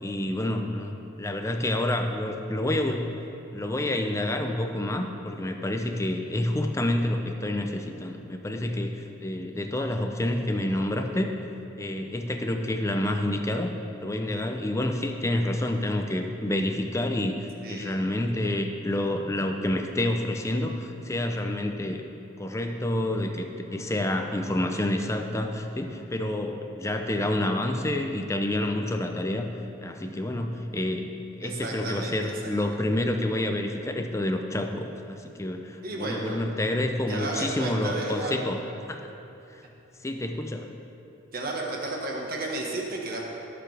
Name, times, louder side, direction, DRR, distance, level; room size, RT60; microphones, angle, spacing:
voice 1, 0.0-3.1 3.5-11.3 11.8-13.7 14.0-22.1 22.4-29.5 29.8-38.6 38.9-39.1 39.5-39.6 40.0-40.7, left 1 dB, 15° left, 5 dB, 0.5 m, -28 dB
voice 2, 17.6-18.0 31.4-32.8 35.8-36.4 37.1-38.4 41.3-43.2, right 2 dB, 45° right, -1 dB, 1.4 m, -33 dB
17.5 x 6.8 x 3.4 m, 2.8 s
head